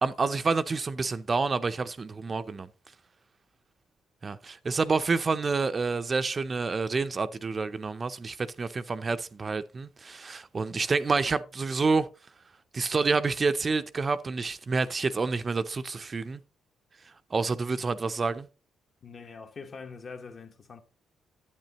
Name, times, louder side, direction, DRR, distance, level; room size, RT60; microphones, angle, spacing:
voice 1, 0.0-2.7 4.2-12.1 12.7-16.4 17.3-18.5, right 4 dB, 35° right, 0.5 m, -28 dB
voice 2, 19.0-20.8, left 5 dB, 45° left, 1.2 m, -43 dB
10.5 x 8.2 x 2.9 m
cardioid pair, 90°, 0 cm